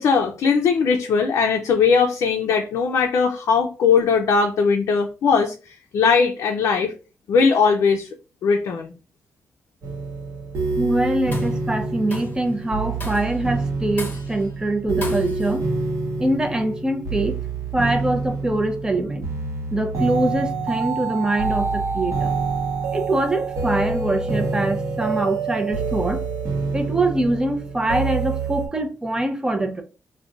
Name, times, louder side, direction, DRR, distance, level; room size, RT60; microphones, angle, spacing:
voice 1, 0.0-5.5 5.9-6.9 7.3-8.1 8.4-8.9, left 5 dB, 90° left, 0.4 m, -19 dB
sound 1, 9.8-28.7, right 4 dB, 80° right, 0.8 m, -27 dB
voice 2, 10.8-15.6 16.2-17.4 17.7-19.3 19.7-22.3 22.9-26.2 26.7-29.8, right 1 dB, 15° right, 0.5 m, -23 dB
Tools, 11.1-11.6 12.1-12.5 13.0-13.4 14.0-14.5 15.0-15.6, left 2 dB, 35° left, 1.0 m, -35 dB
2.4 x 2.1 x 3.7 m
cardioid pair, 100°, 5 cm